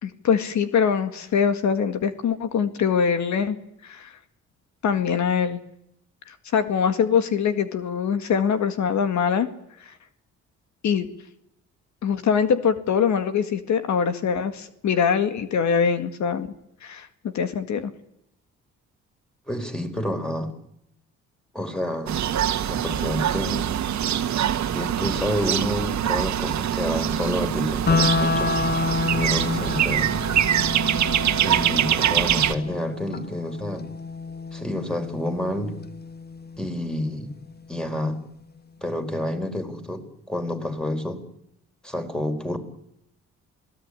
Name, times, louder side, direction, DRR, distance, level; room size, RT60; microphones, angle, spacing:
voice 1, 0.0-3.6 3.8-4.1 4.8-5.6 6.3-9.5 9.8-9.9 10.8-11.1 12.0-16.5 16.8-17.1 17.3-17.9, left 7 dB, 70° left, 10 dB, 2.0 m, -23 dB
voice 2, 19.5-20.5 21.5-22.2 22.7-23.8 24.7-28.5 29.1-30.1 31.4-33.9 34.5-35.8 36.6-37.3 37.7-38.2 38.8-41.2 41.8-42.6, left 1 dB, 5° left, 6 dB, 4.5 m, -29 dB
sound 1, 22.1-32.5, right 10 dB, 65° right, 1.7 m, -24 dB
sound 2, 27.9-37.9, left 4 dB, 30° left, 1.4 m, -29 dB
27.5 x 18.0 x 9.8 m, 0.80 s
cardioid pair, 90°, 30 cm